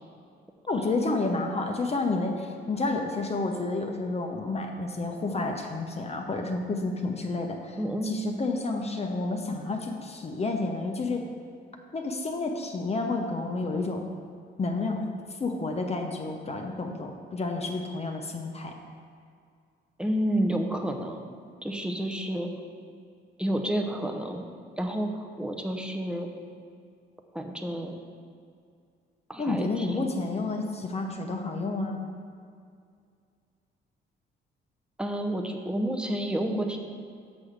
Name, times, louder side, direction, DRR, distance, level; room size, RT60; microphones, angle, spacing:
voice 1, 0.7-7.8 8.0-11.2 11.9-14.0 14.6-15.1 15.4-18.7 29.4-32.1, left 3 dB, 30° left, 3 dB, 0.8 m, -30 dB
voice 2, 7.8-8.1 20.0-21.2 21.6-22.5 23.4-24.4 24.8-26.3 27.3-28.0 29.3-30.0 35.0-36.8, right 1 dB, 5° right, 3 dB, 0.8 m, -30 dB
6.2 x 6.1 x 5.0 m, 2.3 s
cardioid pair, 90°, 20 cm